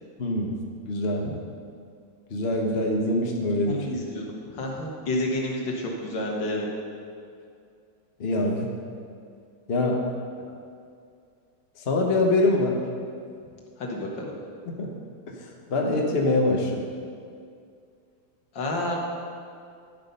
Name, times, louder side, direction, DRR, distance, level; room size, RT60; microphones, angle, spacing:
voice 1, 0.2-0.6 0.8-1.3 2.3-3.8 8.2-8.7 9.7-10.0 10.4-10.6 11.8-12.8 14.7-14.9 15.3-16.9, left 2 dB, 40° left, 0 dB, 1.1 m, -24 dB
voice 2, 3.7-6.7 13.8-14.3 18.5-19.0, left 1 dB, 75° left, -1 dB, 2.2 m, -30 dB
10.5 x 8.3 x 5.4 m, 2.3 s
omnidirectional pair, 2.1 m